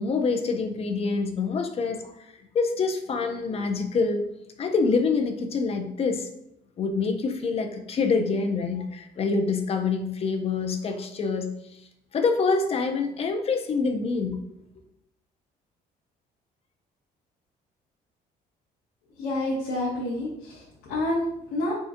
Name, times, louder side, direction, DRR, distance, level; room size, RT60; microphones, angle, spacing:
voice 1, 0.0-2.1 2.5-4.2 4.6-6.3 6.8-11.5 12.1-14.4, left 4 dB, 35° left, 6 dB, 0.4 m, -26 dB
voice 2, 19.2-21.7, left 1 dB, 90° left, -5 dB, 0.8 m, -28 dB
3.6 x 2.5 x 2.5 m, 0.78 s
cardioid pair, 110°, 17 cm